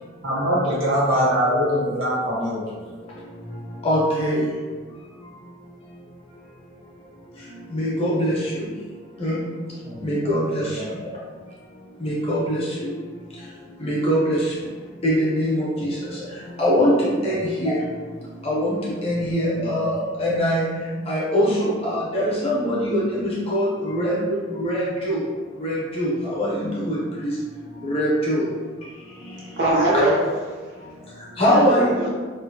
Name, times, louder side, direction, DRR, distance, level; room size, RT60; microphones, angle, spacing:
voice 1, 0.2-2.9 9.8-10.2 10.6-11.0 15.8-15.9 17.3-17.4 19.5-19.9, equal, 80° right, -7 dB, 1.0 m, -24 dB
voice 2, 3.8-4.5 7.7-8.7 9.2-9.4 10.0-11.1 12.0-12.9 13.8-14.5 15.0-16.3 16.6-17.8 18.4-19.9 20.2-20.6 21.1-25.2 25.6-27.3 27.8-28.4 31.4-32.1, equal, 30° left, -6 dB, 0.7 m, -22 dB
voice 3, 29.6-30.8 31.5-32.1, right 1 dB, 55° right, -6 dB, 0.8 m, -22 dB
2.7 x 2.5 x 2.6 m, 1.4 s
head